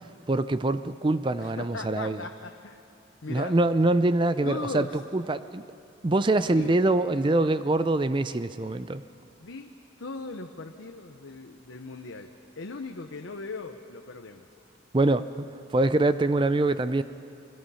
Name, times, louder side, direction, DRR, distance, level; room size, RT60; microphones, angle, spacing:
voice 1, 0.3-2.2 3.3-4.9 5.1-5.7 6.0-9.0 14.9-17.0, right 2 dB, 25° right, 13 dB, 0.4 m, -24 dB
voice 2, 1.4-2.8 3.2-3.6 4.4-5.0 6.5-6.8 9.4-9.7 10.0-14.5, left 3 dB, 85° left, 5 dB, 0.9 m, -38 dB
30.0 x 21.5 x 5.7 m, 2.5 s
head